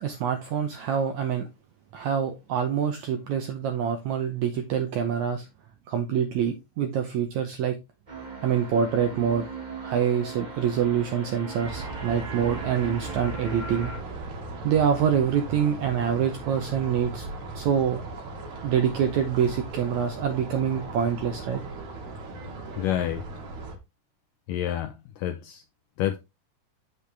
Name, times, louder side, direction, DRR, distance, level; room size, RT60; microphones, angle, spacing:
voice 1, 0.0-1.5 1.9-5.5 5.9-7.8 8.4-9.4 9.8-13.9 14.6-17.3 17.6-18.0 18.6-21.6, right 8 dB, 75° right, 1.7 m, -26 dB
sound 1, 8.1-14.0, right 3 dB, 40° right, 0.6 m, -38 dB
sound 2, 11.6-23.8, right 3 dB, 55° right, 3.0 m, -38 dB
voice 2, 22.8-23.3 24.5-25.6 26.0-26.2, left 11 dB, 75° left, 2.1 m, -28 dB
7.9 x 6.9 x 3.3 m
omnidirectional pair, 4.3 m